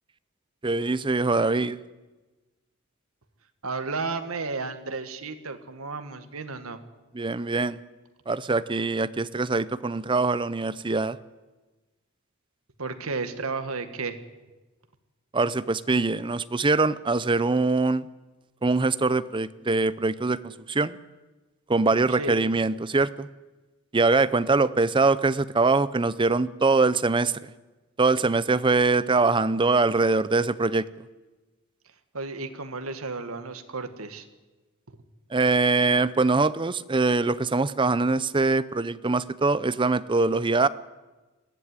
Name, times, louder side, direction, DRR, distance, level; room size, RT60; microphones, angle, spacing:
voice 1, 0.6-1.8 7.1-7.8 8.3-11.2 15.3-18.0 18.6-21.0 21.7-23.3 23.9-27.3 28.0-30.9 35.3-40.7, right 3 dB, 25° right, 16 dB, 0.6 m, -23 dB
voice 2, 3.6-6.8 12.8-14.2 22.1-22.4 32.1-34.2, right 4 dB, 80° right, 8 dB, 1.7 m, -33 dB
20.5 x 14.5 x 9.7 m, 1.2 s
head